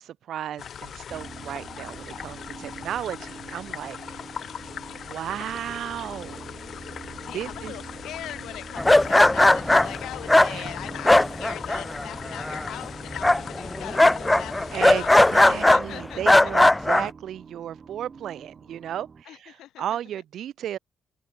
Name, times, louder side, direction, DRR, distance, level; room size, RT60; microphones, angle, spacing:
voice 1, 0.0-4.0 4.3-4.4 4.9-6.4 7.3-7.7 10.5-10.7 14.7-15.0 15.3-20.8, right 10 dB, 65° right, 3.3 m, -34 dB
sound 1, 0.6-15.6, left 8 dB, 50° left, 3.5 m, -40 dB
sound 2, 1.1-19.2, right 5 dB, 30° right, 2.9 m, -45 dB
voice 2, 7.2-15.3 15.7-16.5 19.3-19.8, left 13 dB, 80° left, 3.6 m, -40 dB
sound 3, 8.8-12.0 12.3-12.9 13.2-15.8 16.2-17.1, left 1 dB, 10° left, 0.5 m, -18 dB
cardioid pair, 140°, 0 cm